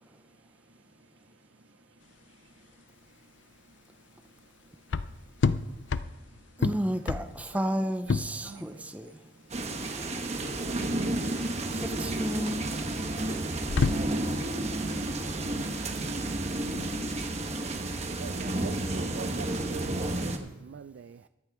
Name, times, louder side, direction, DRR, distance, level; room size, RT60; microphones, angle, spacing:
voice 1, 0.7-1.0 1.3-1.7 2.0-4.1 4.8-4.9 5.5-6.2 7.1-7.2 7.5-7.6 8.4-11.9, right 2 dB, 85° right, 1.6 m, -58 dB
sound 1, 2.0-20.2, left 4 dB, 75° left, 0.5 m, -34 dB
voice 2, 6.6-9.1 11.7-12.6, equal, 10° right, 0.5 m, -32 dB
sound 2, 9.5-20.4, right 2 dB, 35° right, 1.1 m, -31 dB
voice 3, 18.2-21.3, right 6 dB, 70° right, 0.3 m, -43 dB
22.5 x 8.6 x 3.5 m
head